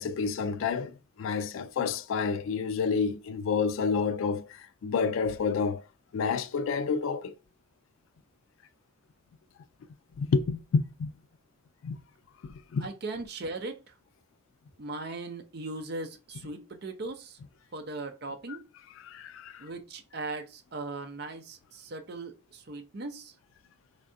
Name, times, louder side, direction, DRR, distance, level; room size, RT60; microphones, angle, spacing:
voice 1, 0.0-5.8 6.1-7.3 10.2-11.1 11.8-12.0 12.4-12.9 19.0-19.7, left 5 dB, 70° left, 0.3 m, -29 dB
voice 2, 12.8-13.9 14.8-17.4 17.7-18.7 19.6-23.3, right 2 dB, 50° right, 0.5 m, -38 dB
3.6 x 3.2 x 2.6 m
head